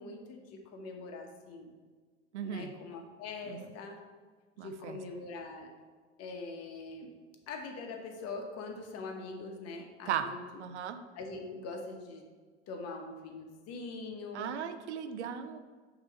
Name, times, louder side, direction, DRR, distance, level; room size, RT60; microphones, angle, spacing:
voice 1, 0.0-1.7 2.4-4.0 4.6-5.7 6.2-7.1 7.5-10.4 11.2-12.2 12.7-14.6, left 3 dB, 45° left, 3 dB, 1.1 m, -43 dB
voice 2, 2.3-2.7 3.4-3.7 4.6-5.0 10.1-10.3 10.6-11.0 14.3-15.6, right 8 dB, 80° right, 10 dB, 0.5 m, -37 dB
6.2 x 3.1 x 5.3 m, 1.5 s
hypercardioid pair, 75°, 34 cm